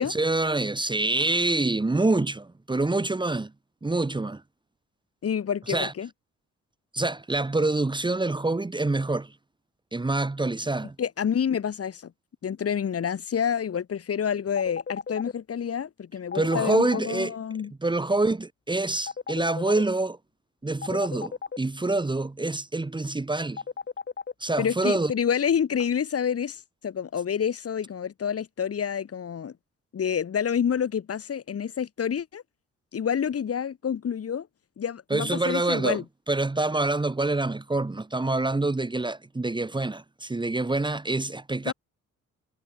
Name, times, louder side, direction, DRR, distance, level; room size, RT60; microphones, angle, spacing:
voice 1, 0.1-3.5 3.8-4.4 5.7-5.9 6.9-9.3 9.9-10.9 16.3-17.3 17.8-20.2 20.6-23.6 24.4-25.1 35.1-36.0 36.3-41.7, right 2 dB, 15° right, 1.7 m, -26 dB
voice 2, 5.2-6.1 11.0-12.1 12.4-17.7 24.6-29.5 29.9-32.4 32.9-34.5 34.8-36.0 41.6-41.7, left 8 dB, 50° left, 4.4 m, -28 dB
sound 1, 14.6-15.3 16.3-17.1 19.1-19.8 20.8-21.6 23.6-24.3, left 5 dB, 35° left, 2.7 m, -34 dB
cardioid pair, 90°, 30 cm